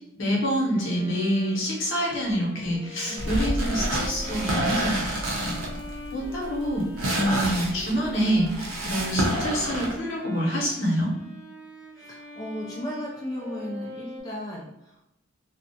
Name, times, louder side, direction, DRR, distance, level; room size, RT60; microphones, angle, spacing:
voice 1, 0.1-5.5 6.1-6.8 7.1-11.1, equal, 65° left, -3 dB, 0.8 m, -26 dB
Bowed string instrument, 0.7-14.2, left 1 dB, 10° right, 0.7 m, -43 dB
sound 1, 3.2-9.9, right 1 dB, 80° right, 0.6 m, -28 dB
voice 2, 12.0-15.0, equal, 20° left, -4 dB, 0.3 m, -35 dB
2.4 x 2.0 x 2.7 m, 0.82 s
head